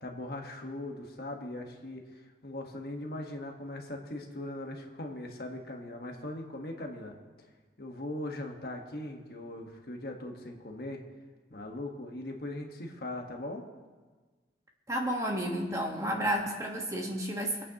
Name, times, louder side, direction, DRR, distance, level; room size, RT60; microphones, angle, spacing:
voice 1, 0.0-7.1 7.8-11.0 11.5-13.7, left 1 dB, 60° left, 2 dB, 1.4 m, -40 dB
voice 2, 14.9-17.6, equal, 20° right, 1 dB, 1.3 m, -31 dB
25.5 x 8.8 x 2.9 m, 1.4 s
head